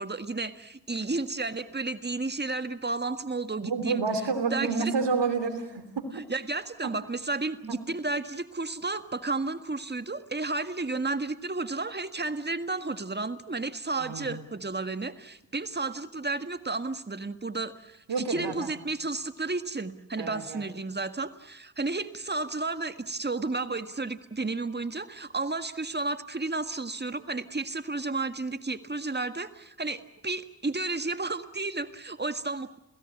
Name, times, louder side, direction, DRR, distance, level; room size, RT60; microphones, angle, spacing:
voice 1, 0.0-4.0 4.5-4.9 6.1-32.8, right 3 dB, 20° right, 10 dB, 1.8 m, -32 dB
voice 2, 3.6-6.1 6.8-6.9 7.7-7.8 14.0-14.4 18.1-18.7 20.2-20.7, right 4 dB, 65° right, 9 dB, 3.1 m, -29 dB
29.0 x 16.5 x 8.6 m, 0.92 s
supercardioid pair, 45°, 46 cm